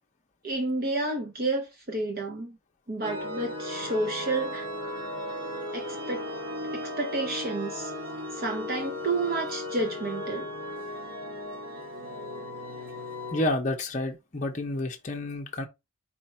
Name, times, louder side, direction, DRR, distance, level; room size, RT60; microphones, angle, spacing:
voice 1, 0.4-2.6 2.9-4.7 5.7-6.2 6.7-7.9 8.3-10.5, right 2 dB, 45° right, 0.7 m, -30 dB
sound 1, 3.0-13.5, left 1 dB, 70° right, 2.2 m, -36 dB
voice 2, 13.3-15.7, left 1 dB, 35° left, 0.6 m, -30 dB
4.3 x 2.5 x 4.2 m
head